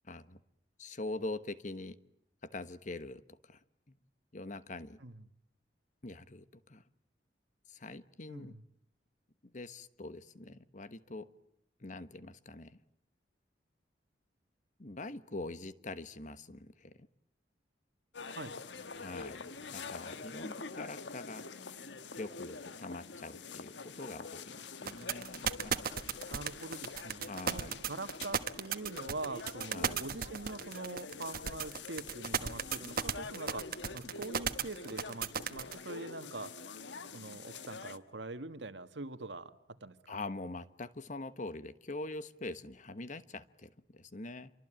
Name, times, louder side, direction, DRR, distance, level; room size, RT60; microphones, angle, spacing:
voice 1, 0.1-0.4 0.8-2.0 2.4-3.6 4.3-5.0 6.0-6.8 7.7-8.5 9.5-11.3 11.8-12.8 14.8-17.1 18.9-19.4 19.7-21.4 22.2-25.9 27.3-27.7 29.7-30.0 40.1-44.5, left 2 dB, 45° left, 13 dB, 1.2 m, -44 dB
voice 2, 8.3-8.6 18.3-18.6 26.3-36.5 37.1-40.2, right 2 dB, 80° right, 10 dB, 1.7 m, -44 dB
sound 1, 18.1-38.0, left 4 dB, 85° left, 1.3 m, -46 dB
sound 2, 24.8-35.7, right 7 dB, 55° right, 1.4 m, -34 dB
27.5 x 24.0 x 9.0 m, 0.72 s
head